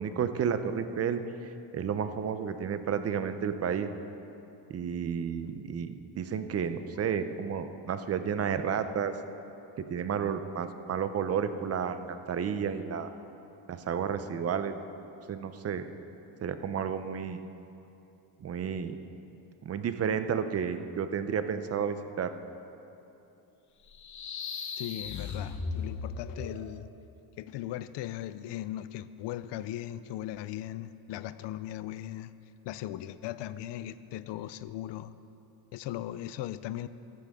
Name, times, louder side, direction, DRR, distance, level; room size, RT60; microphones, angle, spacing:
voice 1, 0.0-3.9 4.7-9.1 9.8-13.1 13.7-14.7 15.3-15.9 16.4-17.4 18.4-19.0 19.6-22.3, right 7 dB, 35° right, 10 dB, 0.6 m, -31 dB
sound 1, 23.9-26.7, left 5 dB, 40° left, 0.9 m, -37 dB
voice 2, 24.7-26.9 27.4-32.3 32.6-35.1 35.7-36.9, left 13 dB, 65° left, 15 dB, 0.6 m, -38 dB
14.5 x 13.5 x 3.6 m, 2.8 s
cardioid pair, 135°, 46 cm